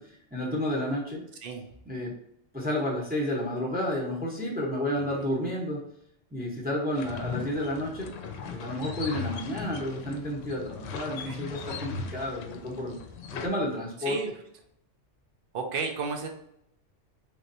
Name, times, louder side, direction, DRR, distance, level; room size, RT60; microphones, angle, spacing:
voice 1, 0.3-1.2 1.9-2.1 2.5-5.8 6.3-8.1 8.5-13.0 13.3-14.2, left 1 dB, 10° right, -3 dB, 0.7 m, -31 dB
voice 2, 5.0-5.3 7.2-7.5 11.1-11.5 14.0-14.3 15.5-16.3, right 5 dB, 55° right, 3 dB, 0.7 m, -34 dB
sound 1, 6.9-13.5, left 5 dB, 70° left, 0.8 m, -38 dB
3.4 x 3.1 x 2.7 m, 0.74 s
omnidirectional pair, 1.3 m